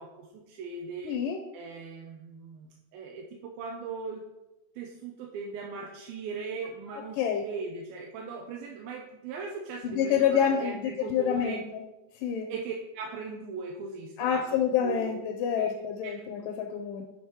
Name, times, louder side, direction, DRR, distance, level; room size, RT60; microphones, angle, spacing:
voice 1, 0.0-1.2 1.5-4.2 4.8-11.6 12.5-14.4 14.8-15.1 15.6-15.7 16.0-16.1, right 4 dB, 80° right, 0 dB, 2.5 m, -39 dB
voice 2, 1.0-1.4 6.9-7.4 9.8-11.8 12.2-12.5 14.2-17.0, left 8 dB, 80° left, 3 dB, 2.1 m, -28 dB
7.1 x 5.8 x 4.7 m, 0.98 s
omnidirectional pair, 4.4 m